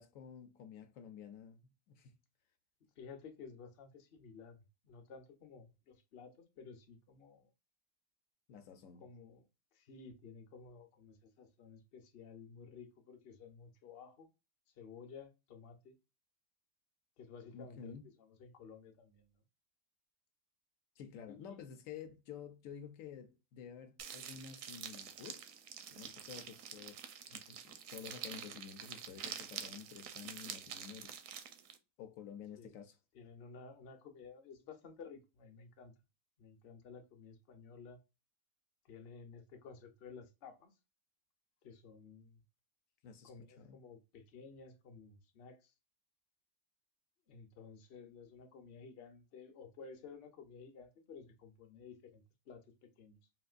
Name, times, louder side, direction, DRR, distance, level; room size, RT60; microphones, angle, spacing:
voice 1, 0.0-2.1 8.5-9.0 17.5-18.1 21.0-25.5 25.9-27.0 27.2-31.2 32.0-33.0 43.0-43.3 43.6-43.8, left 8 dB, 80° left, 1.0 m, -51 dB
voice 2, 3.0-7.5 8.9-9.4 9.7-14.3 14.8-16.0 17.2-19.3 21.3-21.6 32.6-32.8 33.1-35.9 36.4-38.0 38.8-40.7 41.6-42.4 43.2-45.7 47.3-53.2, left 5 dB, 55° left, 0.7 m, -54 dB
sound 1, 24.0-31.8, right 8 dB, 80° right, 1.0 m, -47 dB
3.6 x 2.5 x 2.3 m
omnidirectional pair, 1.4 m